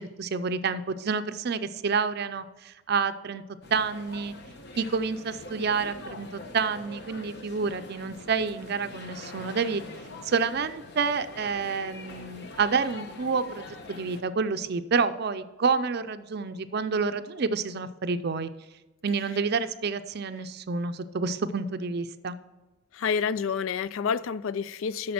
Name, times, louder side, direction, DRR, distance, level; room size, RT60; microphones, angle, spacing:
voice 1, 0.0-3.4 3.7-4.3 4.8-9.8 10.2-18.5 19.0-22.4, right 5 dB, 55° right, 0.5 m, -29 dB
sound 1, 3.6-14.2, left 2 dB, 55° left, 1.0 m, -44 dB
voice 2, 22.9-25.1, left 6 dB, 75° left, 0.3 m, -28 dB
8.5 x 6.4 x 5.8 m
head